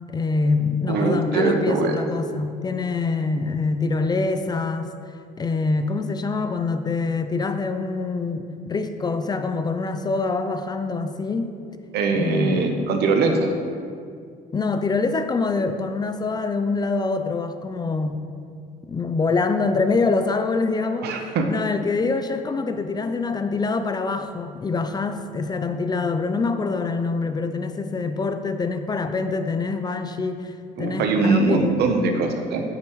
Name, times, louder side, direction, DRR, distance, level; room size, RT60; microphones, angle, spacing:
voice 1, 0.1-4.9 5.4-11.6 12.2-12.7 14.5-18.2 18.8-31.7, left 4 dB, 25° left, 8 dB, 0.4 m, -25 dB
voice 2, 0.9-1.9 11.9-13.5 21.0-21.5 30.8-32.6, right 3 dB, 75° right, 4 dB, 0.9 m, -22 dB
7.8 x 7.4 x 3.1 m, 2.3 s
cardioid pair, 110°, 17 cm